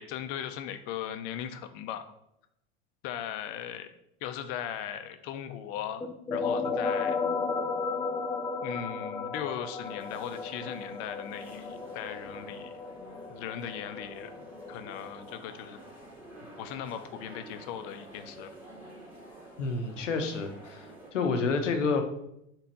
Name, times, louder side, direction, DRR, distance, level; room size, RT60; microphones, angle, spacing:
voice 1, 0.0-2.1 3.0-3.9 4.2-7.2 8.6-12.7 13.3-14.3 14.7-15.8 16.6-18.5, left 9 dB, 60° left, 9 dB, 0.8 m, -38 dB
sound 1, 6.0-15.4, left 4 dB, 10° left, 0.4 m, -34 dB
sound 2, 9.8-21.1, right 1 dB, 5° right, 2.1 m, -49 dB
voice 2, 19.6-22.0, left 4 dB, 85° left, 6 dB, 1.0 m, -29 dB
4.5 x 4.0 x 5.3 m, 0.79 s
hypercardioid pair, 90°, 36 cm